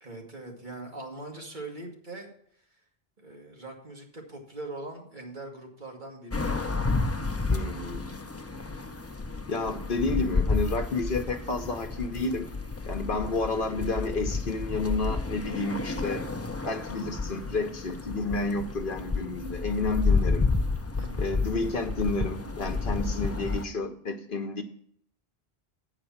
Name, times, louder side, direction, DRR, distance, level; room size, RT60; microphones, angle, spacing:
voice 1, 0.0-2.3 3.2-6.8 21.0-21.3, right 2 dB, 50° right, 1 dB, 2.0 m, -41 dB
sound 1, 6.3-23.6, left 3 dB, 20° left, 0.5 m, -30 dB
voice 2, 7.5-8.2 9.5-12.5 12.9-16.2 16.6-20.5 21.2-24.6, left 3 dB, 60° left, 8 dB, 1.0 m, -30 dB
8.8 x 5.0 x 7.2 m, 0.66 s
omnidirectional pair, 1.0 m